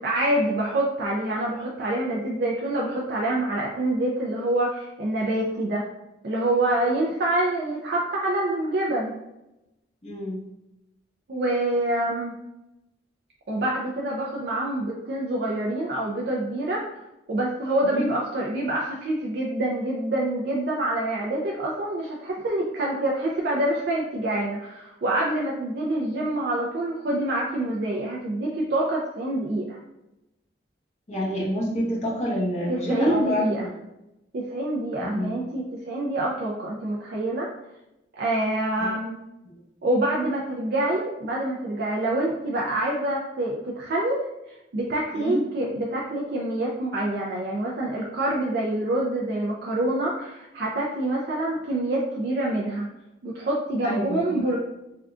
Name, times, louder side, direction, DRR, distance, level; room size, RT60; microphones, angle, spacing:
voice 1, 0.0-5.9 6.2-9.1 11.3-12.3 13.5-16.8 17.3-29.8 32.7-33.7 34.3-37.5 38.1-39.2 39.8-44.2 44.5-52.9 53.2-54.6, right 1 dB, 55° right, -3 dB, 0.4 m, -26 dB
voice 2, 10.0-10.5 17.8-18.1 31.1-33.7 35.0-35.4 38.8-38.9 39.4-39.6 45.1-45.4 53.8-54.4, equal, 35° left, -6 dB, 0.9 m, -28 dB
3.5 x 2.2 x 2.4 m, 0.91 s
head